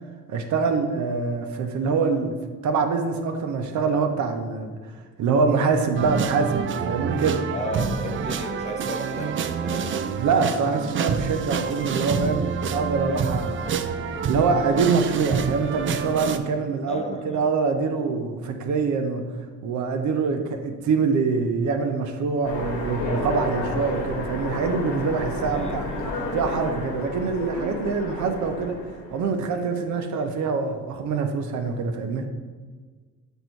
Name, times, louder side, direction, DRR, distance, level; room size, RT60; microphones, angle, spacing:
voice 1, 0.3-2.4 2.6-4.8 5.2-7.4 10.2-13.7 14.3-19.2 19.6-25.9 26.3-28.8 29.1-32.3, right 4 dB, 70° right, 5 dB, 0.8 m, -24 dB
sound 1, 5.9-16.4, right 6 dB, 40° right, 0.4 m, -28 dB
voice 2, 7.5-10.1 16.9-17.5 25.5-26.1, left 2 dB, 20° left, 4 dB, 0.7 m, -34 dB
Train, 22.4-29.4, left 2 dB, 80° left, 1.3 m, -31 dB
7.8 x 2.7 x 4.5 m, 1.5 s
cardioid pair, 90°, 30 cm